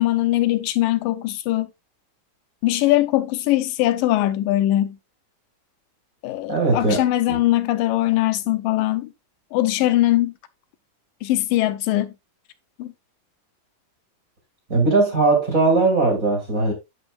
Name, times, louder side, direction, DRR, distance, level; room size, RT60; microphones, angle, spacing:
voice 1, 0.0-1.7 2.6-5.0 6.2-9.1 9.5-10.3 11.2-12.1 12.8-12.9, left 15 dB, 85° left, 2.4 m, -21 dB
voice 2, 6.5-7.0 7.3-7.4 14.7-16.7, right 3 dB, 25° right, 2.8 m, -19 dB
9.5 x 8.1 x 2.4 m
omnidirectional pair, 3.9 m